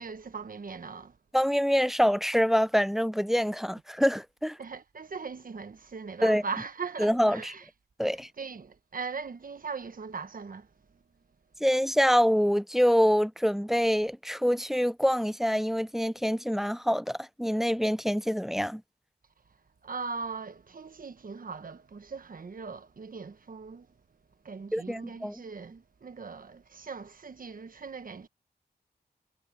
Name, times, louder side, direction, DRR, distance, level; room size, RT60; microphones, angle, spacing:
voice 1, 0.0-1.2 4.6-7.7 8.4-10.7 19.8-23.9 24.4-28.3, right 5 dB, 60° right, 1.2 m, -39 dB
voice 2, 1.3-4.6 6.2-6.4 7.0-7.5 8.0-8.3 11.6-18.8 24.7-25.4, equal, ahead, 0.3 m, -25 dB
wide cardioid pair, 125°, 16 cm